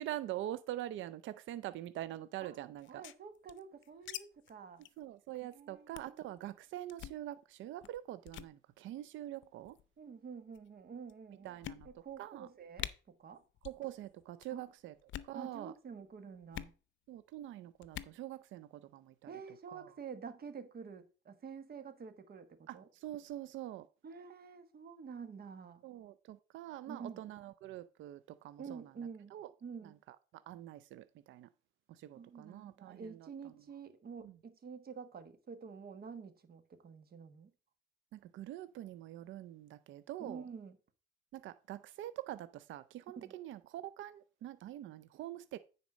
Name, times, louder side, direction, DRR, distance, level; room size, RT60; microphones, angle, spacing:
voice 1, 0.0-3.0 5.0-9.8 11.4-11.9 12.2-12.5 13.6-14.9 15.2-15.7 17.1-19.3 19.7-19.9 22.7-23.9 25.8-28.9 29.3-29.5 29.8-31.5 31.9-33.3 34.2-34.4 38.1-40.5 41.3-45.6, right 13 dB, 75° right, 0.4 m, -45 dB
sound 1, 2.8-4.2 4.5-4.6 4.8-5.0 5.4-5.5 5.9-6.2 6.9-7.2 7.8-8.0 8.3-8.5 9.4-9.8 10.6-10.7 11.1-11.2 11.6-12.2 12.5-12.6 12.8-12.9 13.6-13.9 14.1-14.5 15.0-15.4 16.5-16.8 17.8-18.2, left 12 dB, 70° left, 0.6 m, -45 dB
voice 2, 2.9-4.8 5.4-6.3 10.0-11.5 11.8-13.4 14.5-14.6 15.3-16.7 19.3-22.9 24.0-25.8 26.9-27.2 28.6-29.4 29.6-29.9 32.1-37.5 40.2-40.7 43.1-43.3, right 6 dB, 50° right, 1.4 m, -48 dB
9.4 x 4.2 x 5.0 m
cardioid pair, 90°, 20 cm